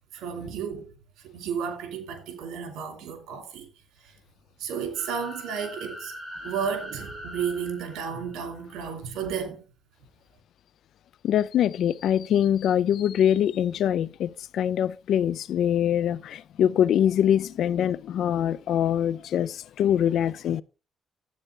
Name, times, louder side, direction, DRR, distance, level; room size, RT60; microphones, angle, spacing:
voice 1, 0.1-0.9 1.2-3.7 4.6-6.1 6.4-9.6, right 7 dB, 90° right, 2.6 m, -32 dB
sound 1, 4.9-8.7, equal, 20° right, 7.2 m, -41 dB
voice 2, 11.2-20.6, left 10 dB, 75° left, 0.5 m, -24 dB
12.5 x 8.7 x 3.3 m
cardioid pair, 90°, 0 cm